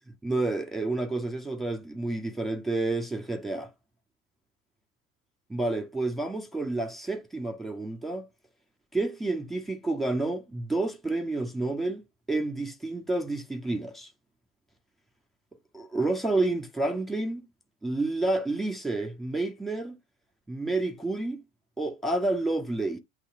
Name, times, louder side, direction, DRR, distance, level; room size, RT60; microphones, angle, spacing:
voice 1, 0.2-3.7 5.5-8.3 8.9-14.1 15.7-17.4 17.8-20.0 20.5-21.4 21.8-23.0, right 2 dB, ahead, 1.8 m, -29 dB
8.2 x 3.4 x 6.5 m
hypercardioid pair, 95°, 40 cm